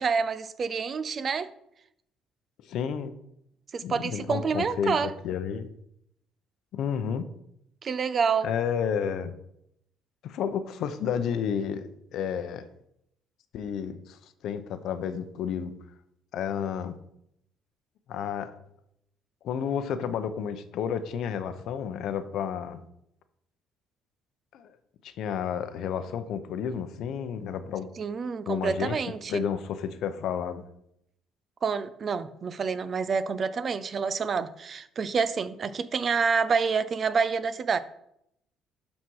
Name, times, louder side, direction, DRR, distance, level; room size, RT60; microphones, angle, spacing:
voice 1, 0.0-1.5 3.7-5.1 7.8-8.5 28.0-29.4 31.6-37.8, right 5 dB, 40° right, 14 dB, 0.6 m, -28 dB
voice 2, 2.7-3.1 3.8-5.7 6.7-7.3 8.4-9.3 10.2-12.7 13.5-14.2 14.4-15.7 16.3-17.0 18.1-18.5 19.4-22.8 24.5-24.7 25.0-27.9 28.5-29.0 29.3-30.6, left 7 dB, 70° left, 10 dB, 0.8 m, -31 dB
12.0 x 4.3 x 4.7 m, 0.76 s
cardioid pair, 110°, 0 cm